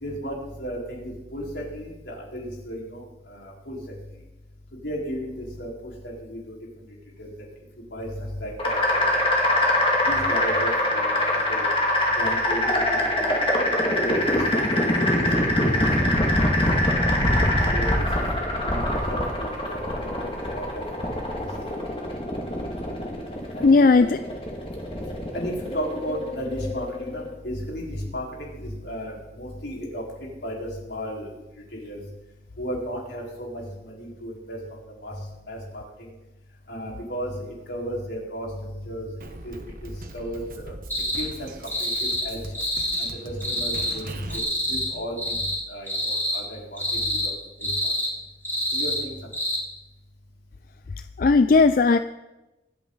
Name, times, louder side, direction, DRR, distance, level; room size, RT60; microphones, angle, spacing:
voice 1, 0.0-3.0 3.3-3.8 4.8-5.7 6.0-6.4 7.2-7.3 7.9-8.1 8.4-9.2 10.1-11.6 12.2-12.7 13.2-13.4 14.0-16.1 16.4-16.7 17.7-17.9 18.6-21.1 21.4-21.7 23.5-23.9 25.3-30.0 30.4-31.3 31.8-32.0 32.6-33.6 34.0-34.6 35.0-35.1 35.5-35.8 36.7-37.4 37.7-38.5 38.8-39.1 39.4-39.6 39.8-40.7 41.2-41.5 41.8-41.9 42.2-42.4 43.0-44.4 44.7-45.3 45.7-47.3 47.6-47.9 48.7-49.1, equal, 80° left, -3 dB, 4.4 m, -34 dB
sound 1, 8.6-27.3, left 1 dB, 30° left, 2.2 m, -24 dB
voice 2, 23.6-24.1 51.2-52.0, left 4 dB, 50° left, 11 dB, 0.4 m, -16 dB
Drum kit, 39.2-44.4, right 2 dB, 50° right, 1.1 m, -41 dB
sound 2, 40.9-41.2 41.7-42.3 42.5-43.1 43.4-43.9 44.3-44.9 45.2-45.6 45.9-46.4 46.8-47.3 47.6-48.1 48.4-49.0 49.3-49.6, equal, 10° left, 3.5 m, -27 dB
24.5 x 8.6 x 4.0 m, 1.0 s
head